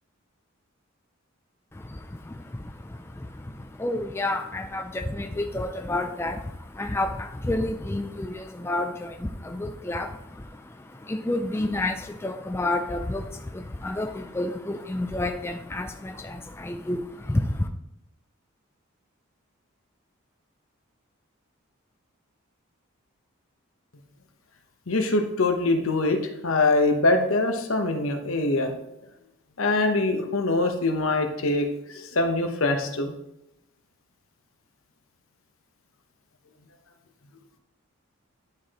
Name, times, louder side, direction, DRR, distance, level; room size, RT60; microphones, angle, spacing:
voice 1, 1.7-17.7, left 2 dB, 10° left, 5 dB, 0.3 m, -30 dB
voice 2, 24.9-28.7 29.6-33.1, left 2 dB, 75° left, 5 dB, 1.0 m, -23 dB
10.5 x 4.8 x 3.0 m, 0.84 s
head